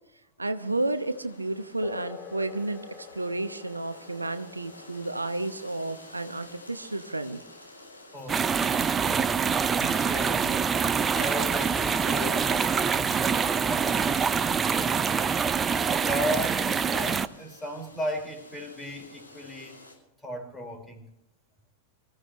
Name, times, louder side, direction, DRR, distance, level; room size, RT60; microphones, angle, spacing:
voice 1, 0.4-2.8 3.1-7.4, right 2 dB, 80° right, 10 dB, 0.9 m, -31 dB
sound 1, 0.6-19.9, left 1 dB, 85° left, 5.0 m, -51 dB
sound 2, 1.8-9.8, left 7 dB, 25° left, 2.3 m, -49 dB
voice 2, 8.1-9.3 9.8-10.6 11.1-15.3 16.0-19.8 20.2-21.0, equal, 10° left, 3 dB, 4.7 m, -36 dB
sound 3, 8.3-17.3, right 6 dB, 20° right, 0.7 m, -25 dB
25.0 x 15.0 x 3.1 m, 0.82 s
figure-of-eight pair, 90°, 0 cm